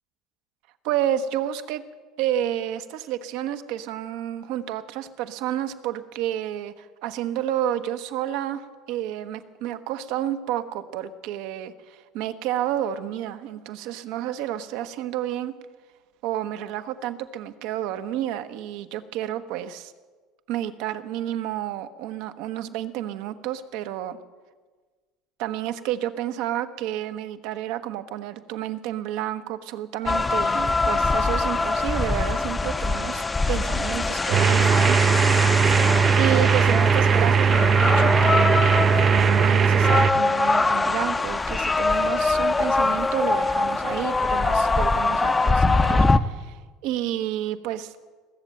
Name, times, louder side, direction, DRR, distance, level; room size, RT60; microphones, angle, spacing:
voice 1, 0.8-1.8 2.2-15.5 16.2-19.9 20.5-24.2 25.4-35.0 36.2-47.9, right 11 dB, 75° right, 10 dB, 1.0 m, -30 dB
sound 1, 30.1-46.2, left 3 dB, 15° left, 0.6 m, -23 dB
sound 2, 34.3-40.1, right 6 dB, 35° right, 0.5 m, -19 dB
19.5 x 7.5 x 9.0 m, 1.4 s
supercardioid pair, 115°, 0 cm